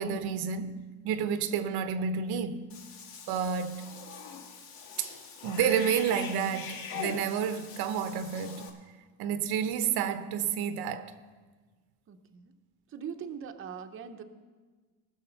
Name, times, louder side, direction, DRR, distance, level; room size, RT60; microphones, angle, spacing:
voice 1, 0.0-2.7 3.3-3.9 5.0-5.1 5.4-8.7 9.2-11.1, right 7 dB, 85° right, 0.9 m, -30 dB
Cat / Bathtub (filling or washing), 2.7-8.7, left 6 dB, 70° left, 1.7 m, -42 dB
voice 2, 12.1-12.5 12.9-14.2, right 7 dB, 35° right, 0.7 m, -41 dB
19.0 x 6.4 x 5.6 m
cardioid pair, 150°, 37 cm